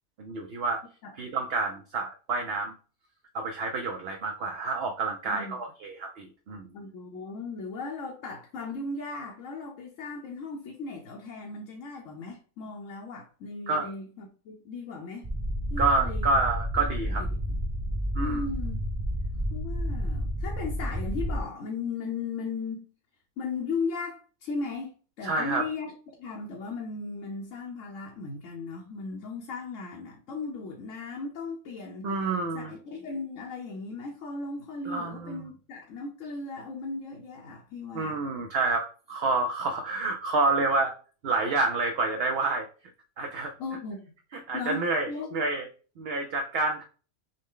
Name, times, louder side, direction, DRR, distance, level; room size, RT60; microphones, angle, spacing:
voice 1, 0.2-0.8 1.2-2.7 3.3-6.7 13.7-13.9 15.8-17.2 18.1-18.5 25.2-25.6 32.0-32.7 34.9-35.4 37.9-40.9 41.2-42.7 43.2-43.5 44.5-45.7 46.0-46.8, right 3 dB, 60° right, 0.7 m, -28 dB
voice 2, 5.2-5.6 6.7-15.3 15.7-16.4 16.7-17.6 18.2-18.8 19.5-22.9 23.4-25.9 26.2-32.1 32.5-38.2 43.6-44.1 44.5-45.4, left 4 dB, 65° left, 1.1 m, -37 dB
sound 1, 15.2-21.4, equal, 35° right, 0.3 m, -30 dB
6.3 x 2.1 x 3.7 m
omnidirectional pair, 1.5 m